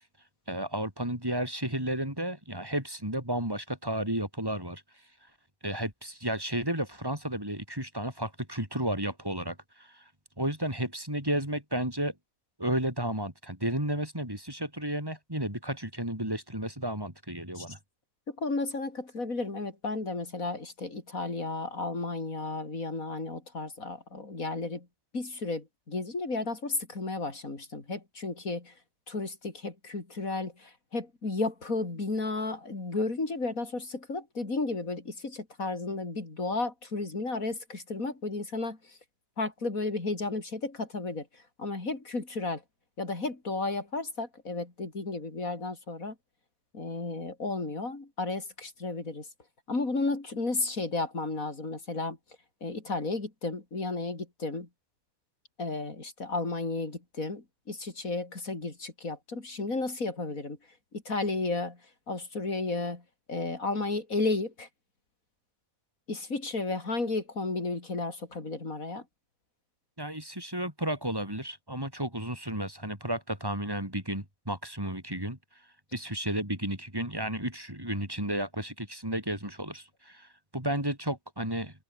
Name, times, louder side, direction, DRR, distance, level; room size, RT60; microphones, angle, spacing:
voice 1, 0.5-4.8 5.6-10.0 10.4-12.1 12.6-17.8 70.0-75.4 75.9-81.7, right 1 dB, 15° right, 5.3 m, -33 dB
voice 2, 18.3-24.9 25.1-28.7 29.1-39.0 39.4-42.6 43.0-46.1 46.7-49.3 49.7-52.2 52.6-54.7 55.6-60.6 60.9-61.8 62.1-63.0 63.3-64.7 66.1-69.0, left 3 dB, 70° left, 4.6 m, -33 dB
omnidirectional pair, 1.5 m